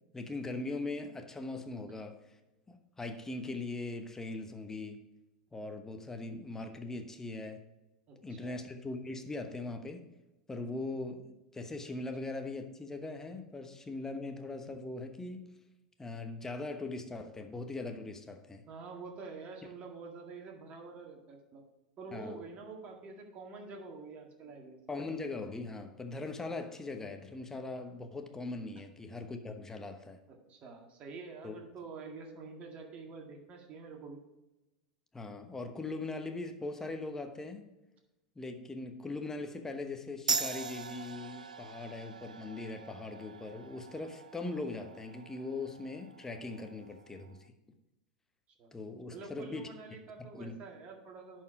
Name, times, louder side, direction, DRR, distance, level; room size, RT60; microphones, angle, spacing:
voice 1, 0.1-2.2 2.7-5.0 5.5-7.6 8.2-10.0 10.5-15.4 16.0-18.6 19.6-19.7 22.1-22.4 24.9-30.2 31.4-31.5 35.1-37.7 38.4-47.4 48.7-49.7 50.2-50.5, left 3 dB, 10° left, 6 dB, 1.0 m, -40 dB
voice 2, 8.1-8.6 18.7-21.6 22.0-24.8 30.3-34.2 48.6-48.7 49.1-51.4, right 4 dB, 35° right, 1 dB, 1.9 m, -47 dB
sound 1, 40.3-47.4, right 5 dB, 90° right, 0.4 m, -41 dB
10.5 x 4.6 x 4.9 m, 1.0 s
hypercardioid pair, 90°, 4 cm